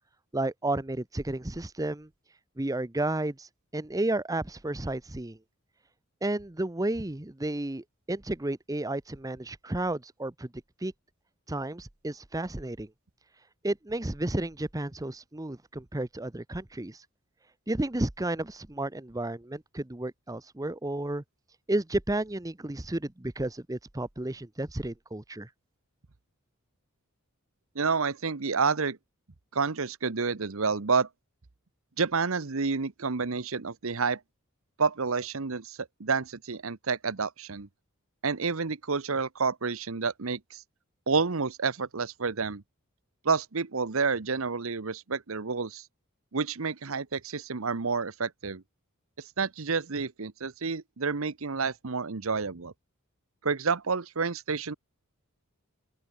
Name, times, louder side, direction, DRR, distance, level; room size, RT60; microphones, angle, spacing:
voice 1, 0.3-2.1 2.6-3.5 3.7-5.4 6.2-10.5 10.8-10.9 11.5-12.9 13.6-17.0 17.7-21.2 21.7-25.5, right 1 dB, 15° right, 0.8 m, -32 dB
voice 2, 27.7-29.0 29.5-31.1 32.0-34.2 34.8-37.7 38.2-40.6 41.1-42.6 43.2-45.9 46.3-48.6 49.2-52.7 53.4-54.7, right 5 dB, 70° right, 1.0 m, -29 dB
open air
head